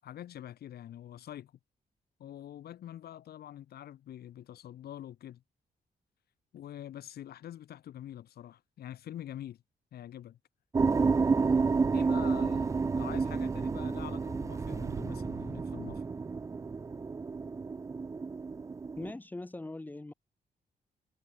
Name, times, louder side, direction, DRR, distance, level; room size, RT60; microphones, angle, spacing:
voice 1, 0.0-1.5 2.2-5.4 6.5-9.6 9.9-10.4 11.9-16.0, left 11 dB, 85° left, 1.4 m, -45 dB
sound 1, 10.7-19.1, right 4 dB, 20° right, 0.4 m, -30 dB
voice 2, 19.0-20.1, left 2 dB, 10° left, 1.9 m, -41 dB
wide cardioid pair, 165°, 16 cm